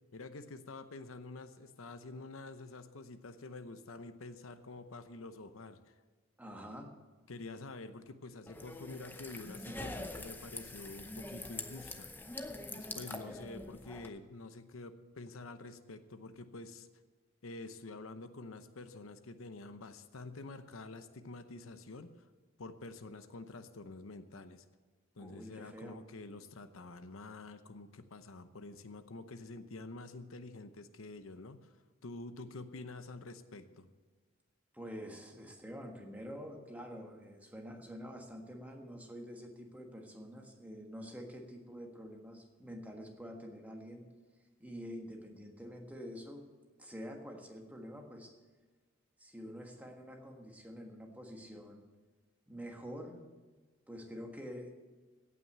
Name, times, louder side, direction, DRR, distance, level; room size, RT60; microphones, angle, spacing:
voice 1, 0.1-5.9 7.3-12.1 12.7-16.9 17.4-22.3 22.6-24.7 25.2-31.8 32.0-33.9, left 3 dB, 80° left, 10 dB, 0.8 m, -48 dB
voice 2, 6.4-6.9 13.0-13.4 25.2-26.0 34.7-44.1 44.6-46.4 46.8-48.3 49.2-51.8 52.5-53.2 53.9-54.8, equal, 5° right, 2 dB, 1.4 m, -47 dB
sound 1, 8.5-14.1, left 2 dB, 10° left, 0.7 m, -44 dB
16.5 x 6.0 x 8.0 m, 1.3 s
head